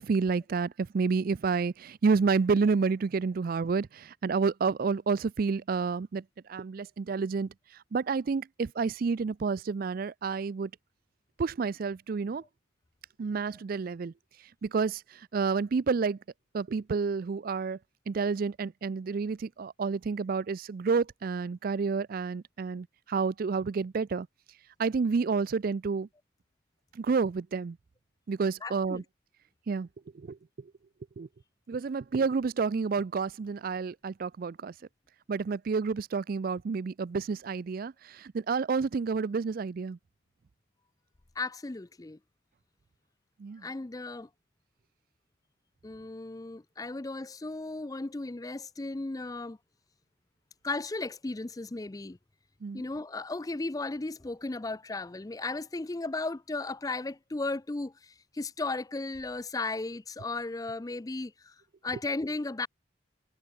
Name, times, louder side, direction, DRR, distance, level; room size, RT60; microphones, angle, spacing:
voice 1, 0.0-6.2 6.5-7.5 7.9-10.7 11.4-12.4 13.2-14.1 14.6-15.0 15.3-16.2 16.5-17.8 18.1-24.3 24.8-26.1 27.0-27.8 28.3-29.0 29.7-29.9 30.3-30.4 31.2-31.3 31.7-34.7 35.3-40.0 43.4-43.6 52.6-52.8, right 5 dB, 45° right, 0.3 m, -29 dB
voice 2, 28.6-29.0 41.4-42.2 43.6-44.3 45.8-49.6 50.6-52.2 52.7-61.5 61.8-62.7, left 3 dB, 20° left, 0.4 m, -35 dB
head